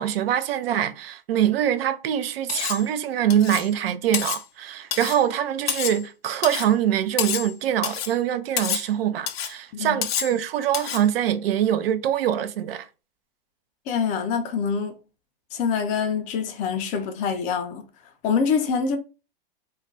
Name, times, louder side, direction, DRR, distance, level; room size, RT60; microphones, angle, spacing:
voice 1, 0.0-12.9, right 10 dB, 80° right, 0.5 m, -24 dB
Cutlery silverware, 2.5-2.9 3.3-3.7 4.1-4.4 4.9-5.2 5.7-6.0 6.4-6.7 7.2-7.5 7.8-8.2 8.6-8.9 9.3-9.5 10.0-10.4 10.7-11.1, left 10 dB, 85° left, 0.5 m, -28 dB
voice 2, 13.9-15.0 15.5-17.8 18.2-19.0, left 6 dB, 25° left, 0.4 m, -25 dB
2.3 x 2.2 x 3.7 m
hypercardioid pair, 130°, 29 cm